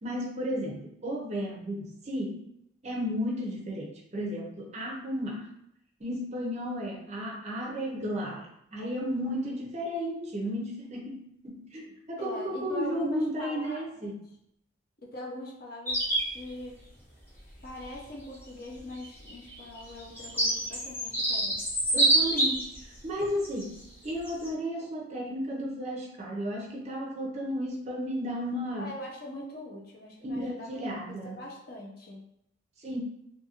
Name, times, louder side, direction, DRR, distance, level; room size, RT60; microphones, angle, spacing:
voice 1, 0.0-2.4 2.8-5.5 6.0-14.2 21.9-23.7 24.0-28.9 30.2-31.4 32.8-33.0, equal, 35° right, -1 dB, 0.5 m, -33 dB
voice 2, 12.2-14.2 15.0-16.1 16.3-16.8 17.6-21.6 28.8-32.2, left 1 dB, 50° left, -2 dB, 0.6 m, -42 dB
sound 1, 15.9-16.3 17.8-17.9 19.0-22.8 23.4-23.6 24.3-24.5, right 1 dB, 10° left, 0.6 m, -26 dB
2.6 x 2.5 x 2.8 m, 0.77 s
head